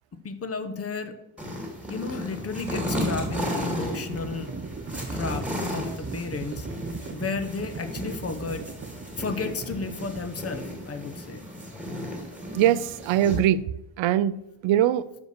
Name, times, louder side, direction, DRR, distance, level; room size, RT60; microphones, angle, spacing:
voice 1, 0.1-1.2 1.9-4.5 4.9-6.7 7.0-8.6 9.2-11.4, left 4 dB, 30° left, 0.8 m, -33 dB
sound 1, 1.4-13.4, equal, ahead, 2.4 m, -34 dB
Livestock farm animals working animals, 2.1-11.1, right 4 dB, 25° right, 0.6 m, -39 dB
voice 2, 12.5-13.7 14.0-15.1, right 11 dB, 70° right, 0.5 m, -22 dB
6.3 x 5.2 x 6.7 m
cardioid pair, 140°, 49 cm